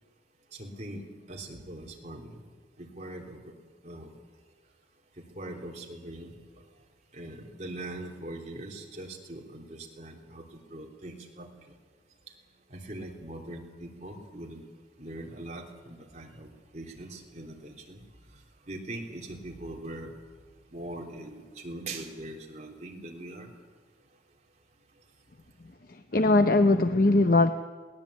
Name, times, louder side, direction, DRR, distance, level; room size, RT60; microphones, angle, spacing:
voice 1, 0.6-2.4 2.8-3.4 3.8-4.1 5.2-6.3 7.1-11.5 12.7-14.6 15.0-18.0 18.7-20.1 20.7-23.5, right 1 dB, 35° right, 0 dB, 3.3 m, -41 dB
voice 2, 25.9-27.5, left 2 dB, 50° left, 8 dB, 0.8 m, -21 dB
22.0 x 18.5 x 8.4 m, 1.6 s
head